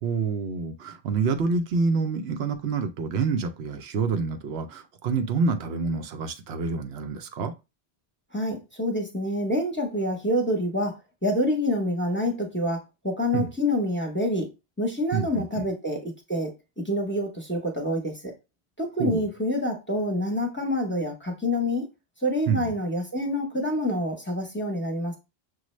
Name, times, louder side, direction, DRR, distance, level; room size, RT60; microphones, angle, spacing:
voice 1, 0.0-7.5 13.3-13.5 15.1-15.7 19.0-19.3 22.5-22.7, right 4 dB, 90° right, 0.9 m, -27 dB
voice 2, 8.3-14.5 14.8-18.3 18.8-21.9 22.2-25.2, left 1 dB, 15° left, 0.7 m, -27 dB
6.2 x 2.1 x 3.1 m
omnidirectional pair, 1.1 m